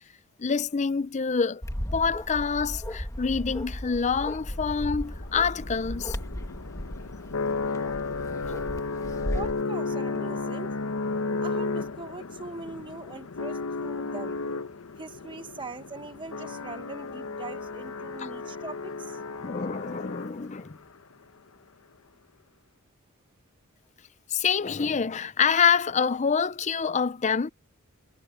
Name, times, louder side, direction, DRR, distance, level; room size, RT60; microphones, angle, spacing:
voice 1, 0.4-1.6 1.9-6.2 18.2-18.3 19.4-20.8 24.3-27.5, left 6 dB, 30° left, 0.5 m, -26 dB
Bark, 1.6-9.6, equal, 15° left, 1.3 m, -36 dB
sound 1, 4.5-20.7, left 3 dB, 70° left, 0.9 m, -34 dB
voice 2, 9.3-10.7 11.4-14.4 15.0-19.2, right 3 dB, 20° right, 1.3 m, -41 dB
head